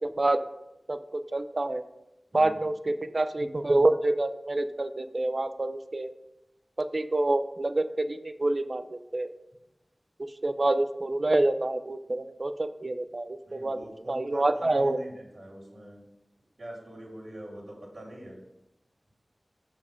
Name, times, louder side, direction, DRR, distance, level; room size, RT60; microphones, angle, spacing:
voice 1, 0.0-0.4 0.9-1.8 2.3-6.1 6.8-9.3 10.4-15.0, right 2 dB, 45° right, 10 dB, 0.6 m, -27 dB
voice 2, 13.4-16.1 16.6-18.4, right 1 dB, 65° right, -8 dB, 3.2 m, -44 dB
8.1 x 5.5 x 5.2 m, 0.91 s
wide cardioid pair, 75°, 0 cm